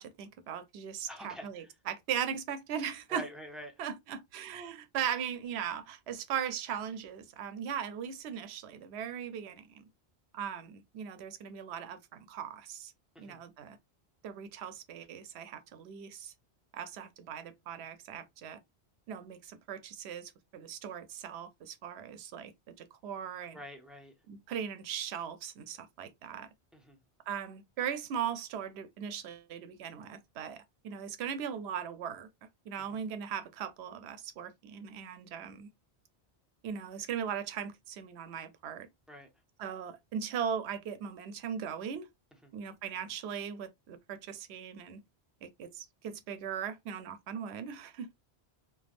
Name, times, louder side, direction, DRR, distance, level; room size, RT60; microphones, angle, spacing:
voice 1, 0.0-3.2 3.8-9.8 10.3-12.9 13.2-13.8 14.2-16.3 16.7-18.6 19.1-22.5 22.8-23.6 24.3-26.5 27.3-30.6 30.8-32.3 32.7-35.7 36.6-38.9 39.6-42.1 42.5-45.0 45.4-48.1, right 8 dB, 75° right, 0.8 m, -39 dB
voice 2, 1.1-1.7 3.1-3.7 13.1-13.4 23.5-24.1 26.7-27.0 32.9-33.0 39.1-39.3 42.4-42.6, equal, ahead, 0.5 m, -46 dB
3.3 x 2.2 x 2.4 m
omnidirectional pair, 1.1 m